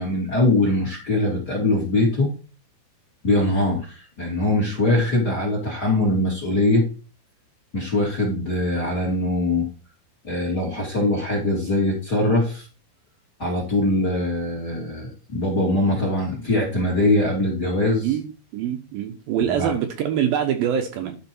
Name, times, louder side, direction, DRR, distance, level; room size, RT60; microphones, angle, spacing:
voice 1, 0.0-2.3 3.2-6.9 7.7-9.7 10.2-12.7 13.4-18.1 19.6-19.7, left 1 dB, 30° left, -1 dB, 2.2 m, -22 dB
voice 2, 18.5-21.2, right 9 dB, 70° right, 5 dB, 2.6 m, -24 dB
11.0 x 5.2 x 4.4 m, 0.35 s
omnidirectional pair, 4.8 m